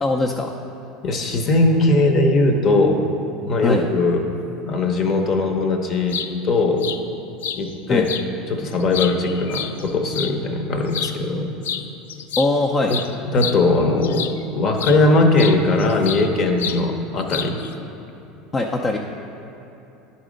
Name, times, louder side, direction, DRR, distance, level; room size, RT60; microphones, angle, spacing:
voice 1, 0.0-0.5 3.6-3.9 7.9-8.1 12.4-12.9 18.5-19.0, left 2 dB, 30° left, 1 dB, 0.5 m, -21 dB
voice 2, 1.0-3.0 3.5-4.3 4.7-6.2 6.4-6.9 7.5-8.1 8.5-11.5 12.9-13.0 13.3-17.6, left 2 dB, 45° left, 5 dB, 0.9 m, -19 dB
sound 1, 5.9-6.3 6.8-7.0 7.4-7.6 8.1-8.2 8.7-10.3 10.9-11.2 11.6-11.8 12.1-14.4 14.8-15.0 15.4-16.3 16.6-16.8 17.3-17.7, left 8 dB, 85° left, 0.3 m, -28 dB
10.5 x 4.2 x 5.1 m, 2.9 s
hypercardioid pair, 90°, 0 cm